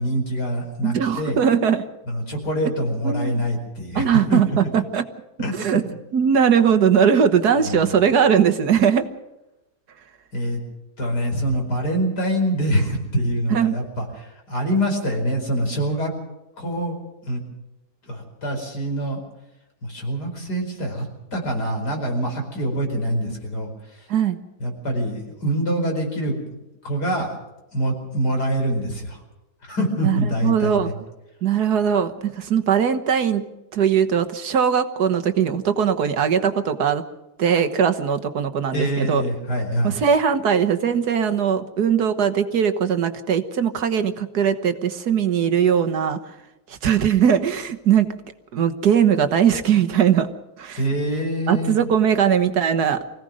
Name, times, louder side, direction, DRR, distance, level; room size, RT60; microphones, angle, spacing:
voice 1, 0.0-1.4 2.1-4.4 5.4-5.5 7.6-7.8 10.3-10.6 11.0-16.1 16.6-17.0 17.3-17.4 18.1-19.2 19.8-21.1 21.3-23.7 24.6-26.4 26.8-27.3 27.7-29.2 29.7-30.9 38.7-40.0 50.8-51.8, right 1 dB, 85° left, 2 dB, 5.5 m, -25 dB
voice 2, 0.8-1.8 3.0-3.4 3.9-5.0 5.5-5.8 6.1-9.0 13.5-13.8 24.1-24.4 30.0-30.9 31.4-33.5 33.7-37.0 37.4-39.2 39.8-46.2 46.7-48.1 48.5-50.3 50.6-50.8 51.5-53.0, right 8 dB, 75° right, 9 dB, 1.8 m, -20 dB
25.0 x 16.5 x 6.3 m, 0.99 s
omnidirectional pair, 1.7 m